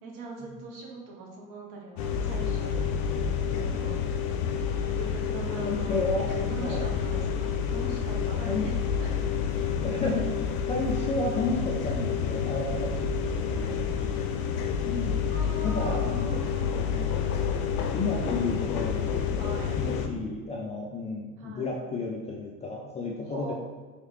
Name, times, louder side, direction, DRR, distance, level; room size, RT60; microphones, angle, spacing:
voice 1, 0.0-2.8 3.5-3.9 5.0-6.0 6.5-9.5 15.3-16.8 19.4-19.7 21.4-21.8 23.2-23.6, right 3 dB, 55° right, -1 dB, 1.1 m, -41 dB
sound 1, 2.0-20.1, left 7 dB, 75° left, 0.5 m, -29 dB
voice 2, 5.6-6.3 6.6-6.9 8.5-8.7 9.8-10.4 10.7-15.2 15.6-16.3 16.8-17.1 17.9-23.5, left 3 dB, 15° left, -2 dB, 0.3 m, -32 dB
3.2 x 3.1 x 3.2 m, 1.4 s
hypercardioid pair, 70°, 44 cm